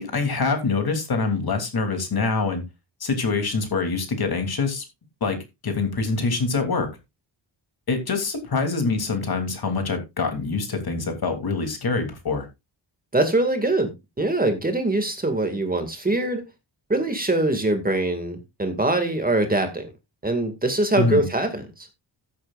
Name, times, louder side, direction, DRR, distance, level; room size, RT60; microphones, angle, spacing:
voice 1, 0.0-2.6 3.0-4.8 5.2-5.4 5.6-6.9 7.9-12.5 21.0-21.2, left 4 dB, 50° left, 3.0 m, -25 dB
voice 2, 13.1-16.4 16.9-19.9 20.2-21.9, right 2 dB, 20° right, 2.1 m, -23 dB
15.0 x 8.6 x 2.5 m
wide cardioid pair, 130°, 47 cm